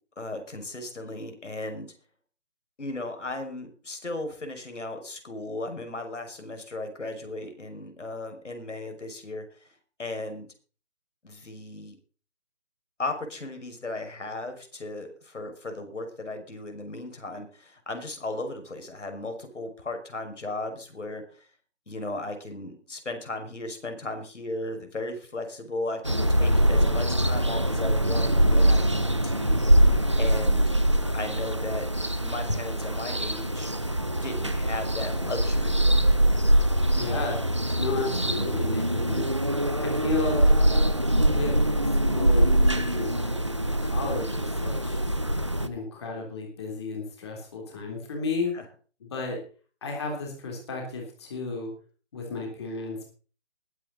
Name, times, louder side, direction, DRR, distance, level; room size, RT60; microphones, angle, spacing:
voice 1, 0.2-1.9 2.8-9.7 10.0-10.5 11.2-12.0 13.0-21.5 21.9-30.6 31.1-31.9 32.2-33.7 34.2-35.8 48.5-48.7, left 2 dB, 80° left, 6 dB, 5.8 m, -36 dB
sound 1, 26.0-45.7, right 1 dB, 25° right, 0.6 m, -23 dB
voice 2, 36.9-37.4 37.8-39.3 39.8-40.5 41.3-41.5 42.0-43.4 43.8-45.0 45.6-48.5 49.0-49.4 49.8-51.7 52.1-53.1, left 3 dB, 20° left, 1 dB, 3.4 m, -33 dB
20.5 x 9.4 x 4.0 m, 0.39 s
hypercardioid pair, 175°, 35 cm